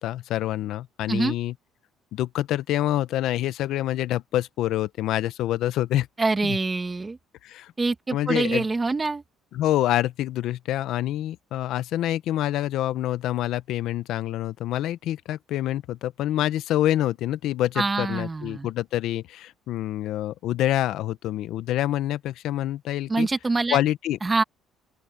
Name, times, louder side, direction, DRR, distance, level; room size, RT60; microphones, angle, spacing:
voice 1, 0.0-1.5 2.1-6.1 6.4-6.6 7.4-7.7 8.1-8.7 9.5-23.3 23.7-24.2, left 13 dB, 65° left, 0.8 m, -26 dB
voice 2, 6.2-7.2 7.8-9.2 17.8-18.7 23.1-23.8 24.2-24.4, right 3 dB, 15° right, 1.9 m, -25 dB
open air
cardioid pair, 155°, 0 cm